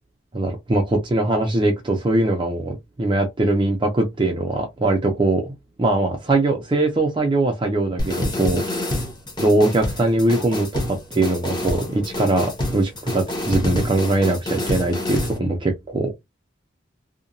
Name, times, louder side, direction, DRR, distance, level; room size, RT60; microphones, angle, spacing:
voice 1, 0.3-5.5 5.8-8.6 9.4-16.1, right 2 dB, 25° right, 0.4 m, -21 dB
sound 1, 8.0-15.4, left 1 dB, 20° left, 0.7 m, -27 dB
2.8 x 2.1 x 2.5 m
head